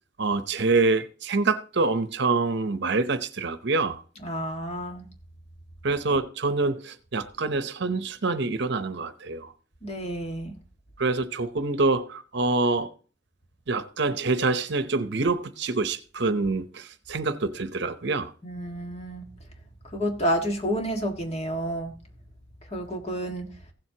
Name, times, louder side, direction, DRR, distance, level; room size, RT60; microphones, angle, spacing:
voice 1, 0.2-4.0 5.8-9.5 11.0-12.9 13.7-18.3, right 3 dB, 65° right, 0.8 m, -26 dB
voice 2, 4.2-5.0 9.8-10.5 18.4-19.2 19.9-21.9 22.7-23.5, equal, 35° left, 1.8 m, -30 dB
16.0 x 7.7 x 2.9 m
head